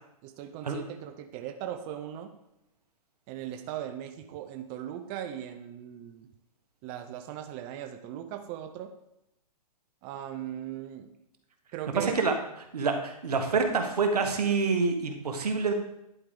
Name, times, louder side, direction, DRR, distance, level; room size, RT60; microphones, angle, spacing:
voice 1, 0.2-2.3 3.3-6.3 6.8-8.9 10.0-11.1 11.7-12.2, right 11 dB, 35° right, 7 dB, 0.6 m, -39 dB
voice 2, 11.9-12.3 12.7-15.7, right 4 dB, 85° right, 5 dB, 1.3 m, -27 dB
10.5 x 4.8 x 3.7 m, 0.81 s
hypercardioid pair, 130°, 19 cm